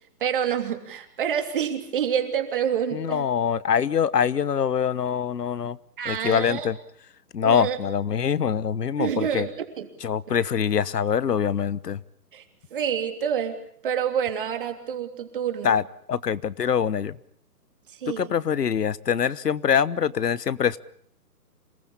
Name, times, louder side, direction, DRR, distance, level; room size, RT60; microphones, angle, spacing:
voice 1, 0.2-3.3 6.0-6.7 7.4-7.8 9.0-9.9 12.3-12.4 12.7-13.6 13.8-15.8 17.9-18.3, right 8 dB, 35° right, 6 dB, 3.1 m, -27 dB
voice 2, 2.9-5.8 6.0-6.8 7.3-9.5 10.0-12.0 15.6-15.8 16.1-17.2 18.1-20.8, left 7 dB, 75° left, 18 dB, 1.2 m, -24 dB
27.0 x 19.0 x 8.7 m, 0.65 s
hypercardioid pair, 170°, 48 cm